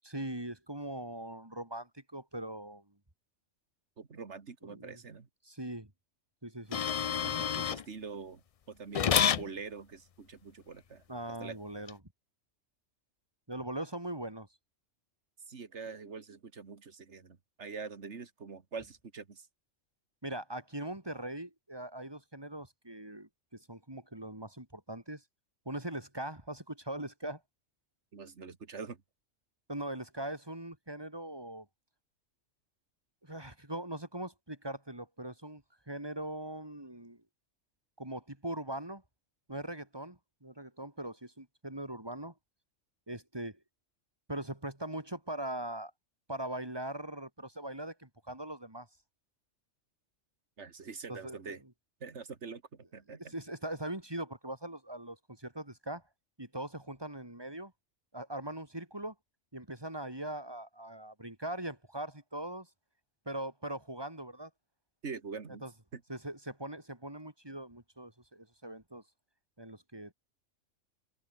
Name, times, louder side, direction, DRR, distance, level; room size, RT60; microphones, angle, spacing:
voice 1, 0.0-2.9 4.6-5.0 5.4-5.9 6.4-6.9 11.1-12.0 13.5-14.5 20.2-25.2 25.7-27.4 29.7-31.7 33.2-37.2 38.0-39.0 39.5-42.3 43.1-43.6 44.3-45.9 46.3-48.9 51.1-51.4 53.1-56.0 56.4-57.7 58.1-59.2 59.5-62.7 63.3-64.5 65.6-65.7 66.1-69.0 69.6-70.1, right 1 dB, 20° right, 3.4 m, -41 dB
voice 2, 4.0-5.3 7.2-8.4 8.7-11.6 15.5-19.5 28.1-29.0 50.6-51.6 52.0-53.3 65.0-65.7 65.9-66.0, right 5 dB, 65° right, 2.1 m, -44 dB
sound 1, 6.7-7.8 8.9-9.5 11.9-12.0, left 8 dB, 60° left, 0.3 m, -28 dB
omnidirectional pair, 1.3 m